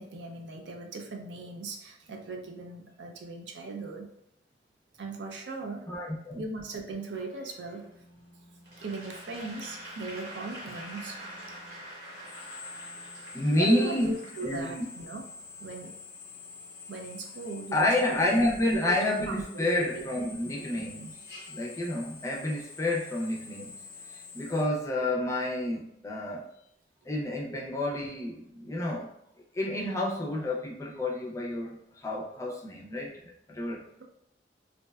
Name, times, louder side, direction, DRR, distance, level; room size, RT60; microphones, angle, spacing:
voice 1, 0.0-4.1 5.0-5.9 6.4-7.9 8.8-11.2 13.6-15.2 15.6-16.0 16.9-18.5 18.7-19.0 19.3-19.7 19.9-20.0, right 3 dB, 80° right, 2 dB, 0.5 m, -38 dB
voice 2, 5.9-6.4 13.3-14.8 17.7-21.2 21.5-23.7 24.1-26.5 27.1-29.1 29.5-33.8, left 1 dB, 15° left, -2 dB, 0.4 m, -29 dB
Drill, 7.3-24.6, left 4 dB, 80° left, 0.5 m, -48 dB
Applause / Crowd, 8.6-15.0, right 1 dB, 65° right, 0.9 m, -45 dB
2.6 x 2.1 x 2.3 m, 0.77 s
head